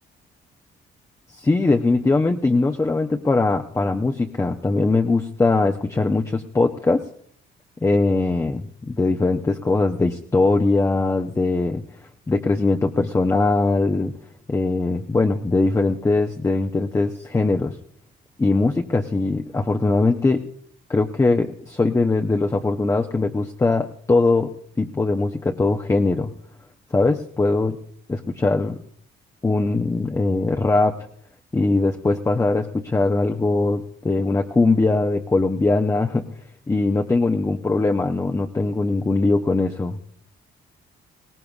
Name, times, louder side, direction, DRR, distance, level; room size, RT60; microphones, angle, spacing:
voice 1, 1.3-7.0 7.8-11.8 12.3-14.1 14.5-17.8 18.4-20.4 20.9-24.5 24.8-26.3 26.9-27.8 28.1-28.8 29.4-30.9 31.5-36.2 36.7-40.0, left 3 dB, 15° left, 4 dB, 0.6 m, -21 dB
21.0 x 17.5 x 2.4 m, 0.66 s
cardioid pair, 90°, 20 cm